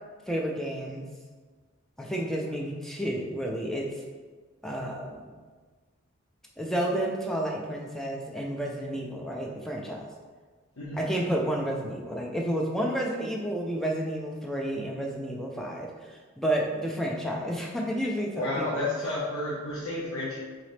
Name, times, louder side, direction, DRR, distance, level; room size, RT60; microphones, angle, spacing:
voice 1, 0.3-1.1 2.0-3.9 4.6-5.4 6.6-10.1 11.0-18.9, right 1 dB, ahead, -1 dB, 0.4 m, -31 dB
voice 2, 10.8-11.1 18.3-20.4, left 2 dB, 85° left, -8 dB, 1.0 m, -31 dB
4.0 x 3.8 x 3.3 m, 1.4 s
head